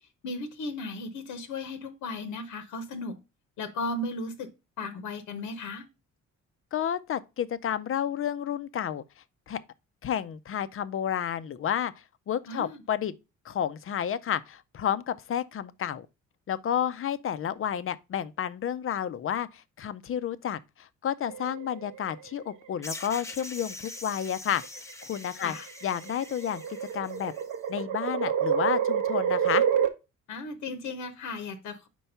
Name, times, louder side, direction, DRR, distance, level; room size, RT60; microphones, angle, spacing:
voice 1, 0.2-3.1 3.6-4.5 4.8-5.9 12.5-12.8 25.4-25.7 30.3-31.9, left 2 dB, 75° left, 0.9 m, -36 dB
voice 2, 6.7-9.0 9.5-9.6 10.0-11.9 12.3-13.1 13.4-16.1 16.5-24.6 25.0-25.6 25.8-26.6 26.9-27.3 27.7-29.6, left 9 dB, 45° left, 0.6 m, -31 dB
sound 1, 21.3-22.1 23.3-23.7 24.6-29.9, right 8 dB, 85° right, 0.9 m, -28 dB
sound 2, 22.8-27.5, left 2 dB, 10° left, 0.7 m, -43 dB
4.6 x 4.5 x 5.4 m
cardioid pair, 90°, 30 cm